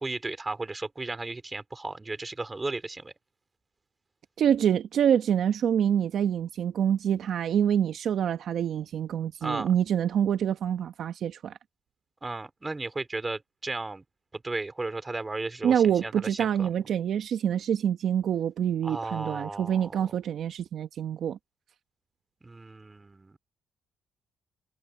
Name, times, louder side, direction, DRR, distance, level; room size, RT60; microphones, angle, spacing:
voice 1, 0.0-3.1 9.4-9.7 12.2-14.0 14.3-16.7 18.8-20.1 22.4-23.4, right 3 dB, 20° right, 3.5 m, -35 dB
voice 2, 4.4-11.6 15.6-21.4, right 9 dB, 65° right, 1.0 m, -26 dB
cardioid pair, 90°, 0 cm